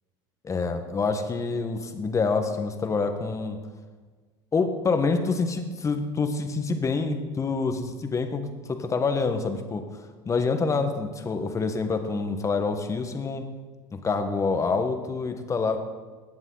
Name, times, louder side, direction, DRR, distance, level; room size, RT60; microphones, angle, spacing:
voice 1, 0.4-3.6 4.5-9.8 10.2-13.5 13.9-15.8, left 4 dB, 25° left, 7 dB, 1.4 m, -27 dB
18.5 x 7.1 x 4.0 m, 1.4 s
supercardioid pair, 95°, 13 cm